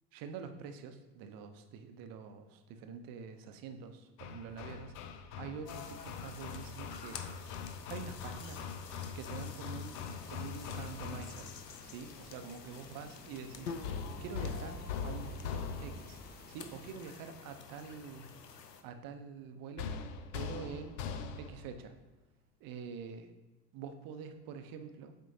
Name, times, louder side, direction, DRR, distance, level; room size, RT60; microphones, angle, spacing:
voice 1, 0.1-7.3 7.9-8.7 9.1-10.0 10.3-11.5 11.8-16.2 16.5-18.3 18.8-19.9 20.3-21.0 21.4-21.9 22.6-23.3 23.7-25.1, right 6 dB, 45° right, 8 dB, 0.8 m, -46 dB
Hammer, 4.2-11.6 13.8-16.2 19.8-21.7, left 6 dB, 55° left, 0.7 m, -42 dB
sound 1, 5.7-18.8, left 6 dB, 90° left, 0.6 m, -49 dB
sound 2, 10.0-16.9, left 2 dB, 20° left, 0.9 m, -54 dB
7.8 x 4.5 x 2.7 m, 1.1 s
figure-of-eight pair, 65°, 48 cm